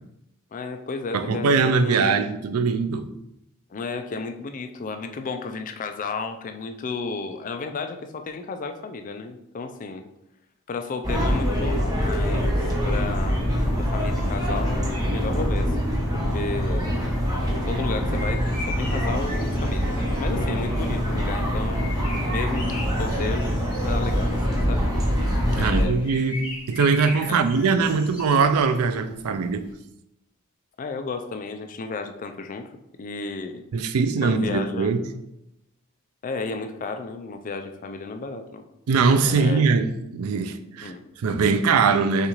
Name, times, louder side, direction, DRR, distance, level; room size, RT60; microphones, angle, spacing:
voice 1, 0.5-2.2 3.7-10.0 10.7-16.9 17.7-22.7 23.0-23.5 23.8-24.9 25.6-26.1 27.3-27.5 30.8-32.7 33.0-33.6 34.2-34.9 36.2-38.6 39.2-39.6 40.8-41.0, left 4 dB, 35° left, 0.4 m, -33 dB
voice 2, 1.1-3.1 25.5-26.4 26.7-29.6 33.7-35.0 38.9-40.9 41.2-42.3, right 4 dB, 90° right, 0.4 m, -21 dB
sound 1, 11.0-25.8, equal, 15° right, 0.9 m, -24 dB
sound 2, 18.0-29.7, left 2 dB, 20° left, 1.3 m, -39 dB
6.5 x 2.4 x 3.0 m
head